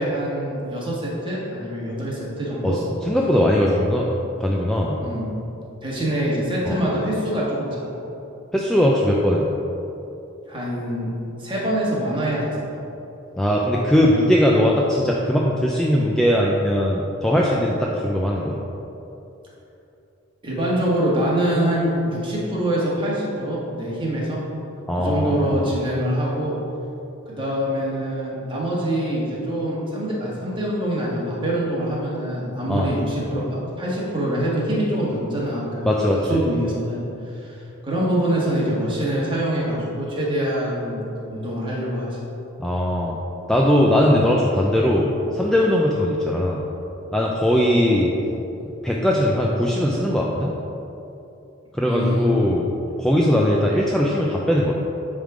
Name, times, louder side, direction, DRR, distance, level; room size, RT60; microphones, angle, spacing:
voice 1, 0.0-2.8 5.0-5.3 5.8-7.9 10.5-11.1 11.4-12.6 20.4-24.4 25.0-26.6 27.3-36.0 36.3-37.1 37.3-42.1 47.5-47.8 51.9-52.3, right 1 dB, 25° right, -6 dB, 1.6 m, -24 dB
voice 2, 2.6-4.1 4.4-5.0 6.7-6.8 8.5-9.5 13.3-18.6 24.9-25.7 32.7-32.9 35.9-36.4 42.6-43.2 43.5-46.6 47.1-48.1 48.8-50.5 51.7-52.7 53.0-54.7, equal, 5° left, -3 dB, 0.4 m, -20 dB
8.9 x 3.7 x 4.9 m, 2.9 s
head